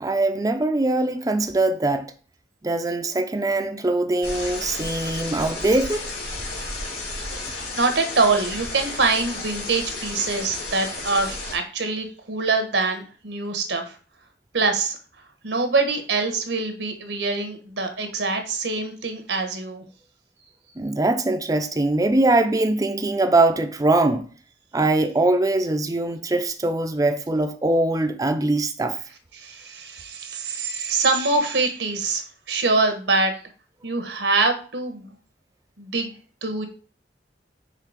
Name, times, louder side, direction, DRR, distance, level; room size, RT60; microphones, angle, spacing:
voice 1, 0.0-2.1 2.6-6.1 20.8-24.2 24.7-29.0, right 2 dB, 20° right, 0.4 m, -22 dB
sound 1, 4.2-11.5, left 2 dB, 65° left, 2.9 m, -33 dB
voice 2, 7.4-13.9 14.5-15.0 15.4-19.8 29.4-33.3 33.8-35.1 35.8-36.1 36.4-36.7, right 3 dB, 85° right, 1.2 m, -24 dB
5.7 x 3.3 x 4.9 m
head